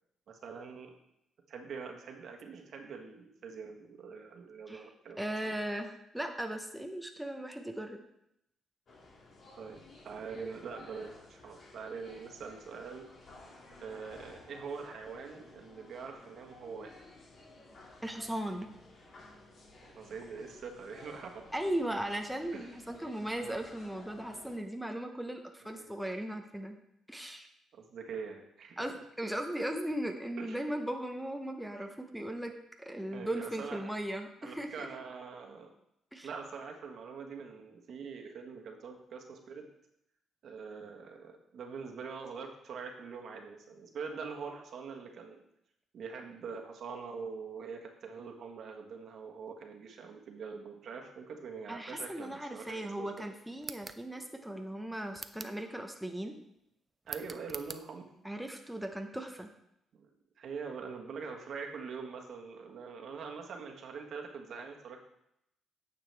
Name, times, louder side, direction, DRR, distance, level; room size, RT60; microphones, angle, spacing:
voice 1, 0.3-0.9 1.5-5.5 9.6-13.1 13.8-17.0 19.9-21.5 22.5-22.7 23.4-23.6 25.6-25.9 27.7-28.8 30.4-30.6 31.7-31.8 33.1-33.9 34.4-35.7 36.2-39.6 40.4-45.4 45.9-53.3 57.1-58.1 59.9-60.1 60.4-65.0, right 5 dB, 65° right, 2 dB, 1.3 m, -44 dB
voice 2, 4.7-8.0 18.0-18.7 21.5-26.8 27.1-27.5 28.8-32.5 32.8-34.9 36.1-36.3 51.7-56.4 58.2-59.5, right 1 dB, 5° right, 3 dB, 0.8 m, -37 dB
sound 1, 8.9-24.6, left 2 dB, 50° left, 2.4 m, -55 dB
sound 2, 53.6-54.0 55.1-55.6 57.1-57.8, right 3 dB, 25° right, 0.5 m, -44 dB
9.2 x 6.8 x 3.4 m, 0.79 s
cardioid pair, 90°, 0 cm